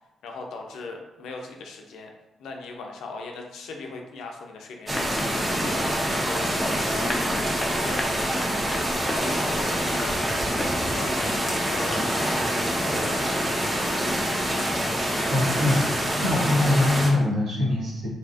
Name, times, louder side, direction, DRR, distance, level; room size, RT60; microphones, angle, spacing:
voice 1, 0.2-2.1 2.4-8.4 8.7-10.4 10.7-13.8, left 3 dB, 85° left, 2 dB, 0.4 m, -39 dB
sound 1, 4.9-11.9, left 1 dB, 20° left, 0.4 m, -36 dB
sound 2, 4.9-17.1, equal, 30° right, 0.7 m, -26 dB
voice 2, 15.3-18.1, left 2 dB, 75° right, -5 dB, 0.9 m, -23 dB
2.7 x 2.4 x 2.3 m, 1.0 s
cardioid pair, 80°, 0 cm